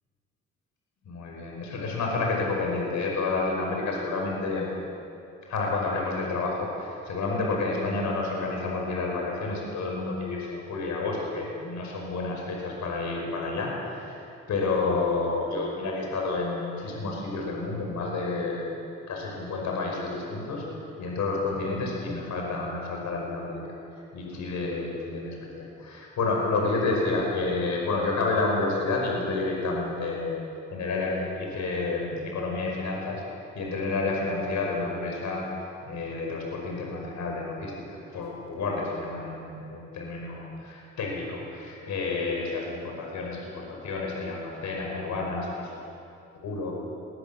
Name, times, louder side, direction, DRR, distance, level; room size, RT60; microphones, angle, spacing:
voice 1, 1.1-4.7 5.5-14.1 14.5-18.7 19.1-20.6 21.0-23.6 24.1-30.4 30.7-33.2 33.6-35.4 35.8-45.7 46.4-46.8, left 3 dB, 70° left, -1 dB, 5.5 m, -30 dB
21.0 x 18.5 x 7.2 m, 2.6 s
cardioid pair, 90°, 30 cm